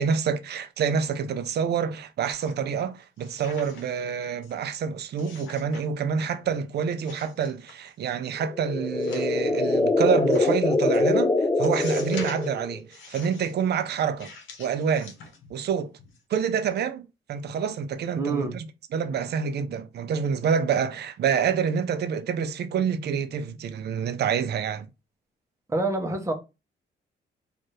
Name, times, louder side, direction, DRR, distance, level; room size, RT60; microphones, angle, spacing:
voice 1, 0.0-14.3 14.6-15.1 15.5-15.9 16.3-18.7 18.9-24.9, right 7 dB, 55° right, 0.5 m, -27 dB
sound 1, 2.3-2.9 3.2-4.0 4.4-4.5 5.2-5.8 6.2-6.6 7.0-8.1 8.9-9.6 10.3-10.5 10.9-11.0 11.6-12.5 12.9-13.5 14.2-15.7 16.0-16.2, left 4 dB, 75° left, 0.9 m, -44 dB
sound 2, 8.4-12.8, left 2 dB, 15° left, 0.3 m, -24 dB
voice 2, 18.2-18.5 25.7-26.3, right 3 dB, 15° right, 0.8 m, -26 dB
2.7 x 2.5 x 3.1 m
cardioid pair, 90°, 20 cm